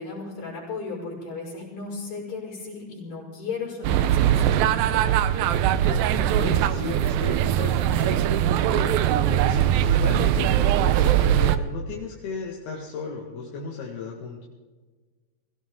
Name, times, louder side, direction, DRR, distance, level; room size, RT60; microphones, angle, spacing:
voice 1, 0.0-4.8, left 4 dB, 45° left, -3 dB, 6.8 m, -35 dB
sound 1, 3.8-11.6, right 11 dB, 80° right, 2.3 m, -21 dB
voice 2, 5.7-14.5, left 4 dB, 75° left, -2 dB, 3.7 m, -35 dB
22.5 x 17.0 x 3.7 m, 1.3 s
omnidirectional pair, 4.7 m